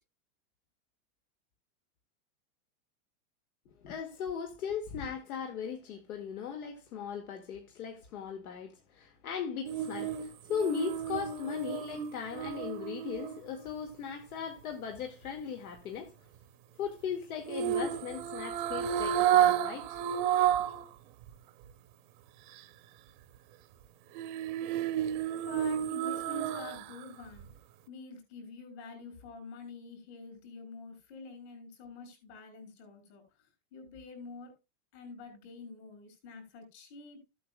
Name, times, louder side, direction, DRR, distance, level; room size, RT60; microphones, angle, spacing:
voice 1, 3.8-16.1 16.8-20.0 20.6-20.7, left 7 dB, 75° left, 2.0 m, -38 dB
sound 1, 9.7-13.9 17.5-20.8 21.2-21.3 24.1-27.0 27.4-27.5, right 10 dB, 35° right, 0.7 m, -31 dB
voice 2, 25.4-27.5 27.9-33.2 33.7-34.5 34.9-37.3, left 3 dB, 50° left, 4.4 m, -47 dB
15.0 x 8.4 x 2.2 m
supercardioid pair, 175°, 43 cm